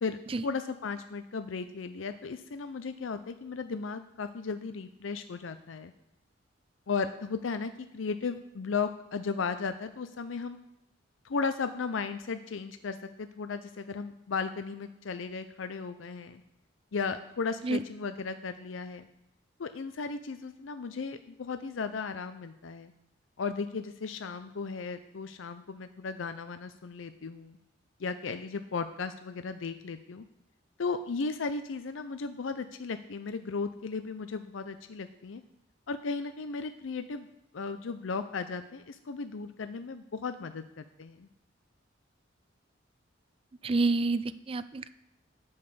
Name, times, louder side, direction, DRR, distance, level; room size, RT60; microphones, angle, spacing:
voice 1, 0.0-5.9 6.9-10.6 11.2-16.4 16.9-19.1 19.6-22.9 23.4-27.6 28.0-30.2 30.8-35.4 35.9-37.3 37.5-41.3, left 4 dB, 85° left, 9 dB, 0.5 m, -35 dB
voice 2, 43.6-44.9, right 3 dB, 30° right, 14 dB, 0.4 m, -28 dB
9.6 x 5.5 x 6.7 m, 0.90 s
head